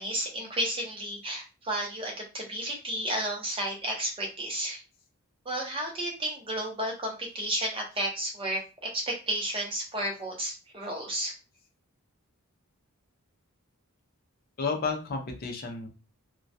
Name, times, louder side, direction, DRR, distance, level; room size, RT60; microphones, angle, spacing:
voice 1, 0.0-4.8 5.5-8.6 8.9-11.3, right 1 dB, 25° right, 0 dB, 0.6 m, -32 dB
voice 2, 14.6-15.9, left 4 dB, 40° left, 2 dB, 0.5 m, -31 dB
2.2 x 2.1 x 2.6 m, 0.31 s
head